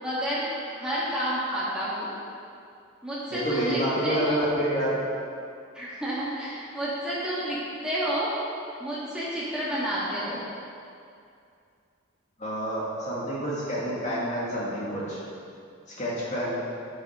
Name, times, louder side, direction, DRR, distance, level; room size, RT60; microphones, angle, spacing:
voice 1, 0.0-2.1 3.0-4.4 5.7-8.3 8.8-10.5, equal, 5° right, -10 dB, 2.6 m, -30 dB
voice 2, 3.3-5.0 12.4-15.2 16.0-16.6, right 1 dB, 35° left, -7 dB, 2.4 m, -28 dB
9.3 x 7.7 x 5.3 m, 2.4 s
head